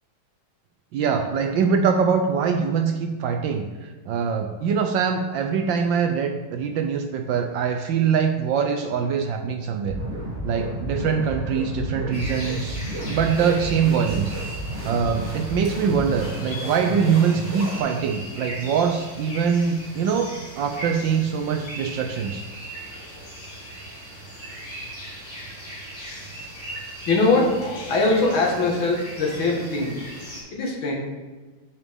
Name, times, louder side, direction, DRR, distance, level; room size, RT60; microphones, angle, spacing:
voice 1, 0.9-3.7 4.1-10.0 10.4-14.4 14.8-22.4, right 6 dB, 75° right, 5 dB, 1.2 m, -23 dB
sound 1, 9.9-17.8, right 1 dB, 30° right, 1.9 m, -32 dB
sound 2, 12.1-30.4, right 1 dB, 90° left, 4.0 m, -38 dB
voice 2, 27.1-29.9 30.5-31.0, left 2 dB, 65° left, -1 dB, 2.2 m, -22 dB
8.4 x 7.1 x 3.5 m, 1.3 s
omnidirectional pair, 2.4 m